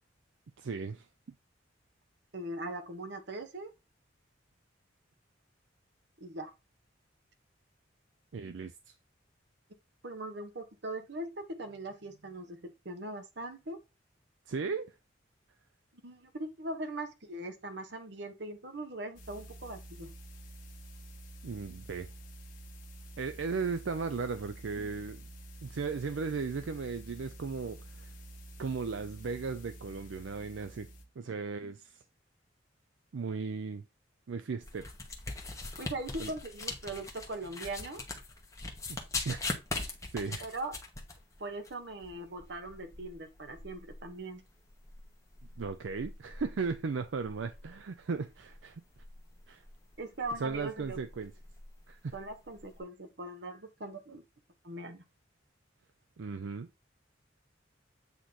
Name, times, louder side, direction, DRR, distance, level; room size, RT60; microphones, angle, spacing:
voice 1, 0.6-1.1 8.3-8.9 14.5-14.9 21.4-22.1 23.2-25.2 25.6-28.1 28.6-30.9 31.2-32.0 33.1-33.8 34.3-34.9 36.2-36.3 38.9-39.0 39.3-39.5 40.1-40.4 45.6-48.8 49.5-49.6 50.4-51.3 51.9-52.1 56.2-56.7, right 4 dB, 80° right, 0.5 m, -36 dB
voice 2, 2.3-3.7 6.2-6.5 10.0-13.8 16.0-20.1 35.8-38.0 40.4-40.7 41.4-44.4 50.0-51.0 52.1-54.2 54.6-55.0, right 2 dB, 65° right, 1.1 m, -40 dB
sound 1, 19.2-31.0, right 1 dB, 45° left, 1.1 m, -49 dB
sound 2, 34.6-52.8, left 3 dB, 15° left, 1.1 m, -43 dB
8.2 x 3.0 x 3.9 m
head